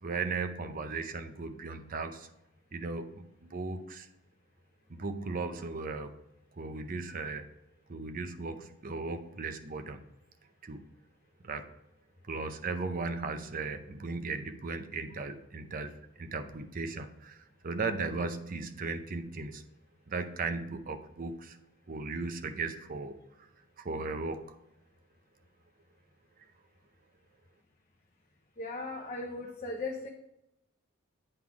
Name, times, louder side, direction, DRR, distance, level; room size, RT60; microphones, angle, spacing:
voice 1, 0.0-2.3 2.7-4.1 4.9-6.1 6.6-7.5 7.9-10.0 10.6-10.8 11.4-11.7 12.3-15.9 16.2-19.6 20.1-21.6 21.9-23.2 23.8-24.5, right 3 dB, 40° right, 8 dB, 0.6 m, -36 dB
voice 2, 28.6-30.1, left 2 dB, 35° left, 1 dB, 0.6 m, -37 dB
8.8 x 3.9 x 4.7 m, 0.86 s
head